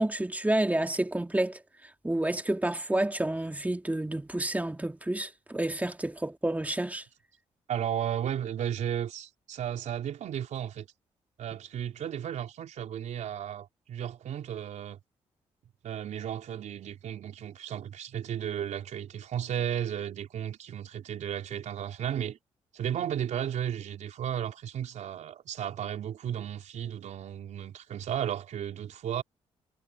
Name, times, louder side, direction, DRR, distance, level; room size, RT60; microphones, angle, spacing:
voice 1, 0.0-1.6 2.0-7.0, right 1 dB, 10° right, 2.4 m, -29 dB
voice 2, 7.7-10.9 11.4-15.0 15.8-22.4 22.7-29.2, right 9 dB, 70° right, 3.9 m, -34 dB
supercardioid pair, 60°, 13 cm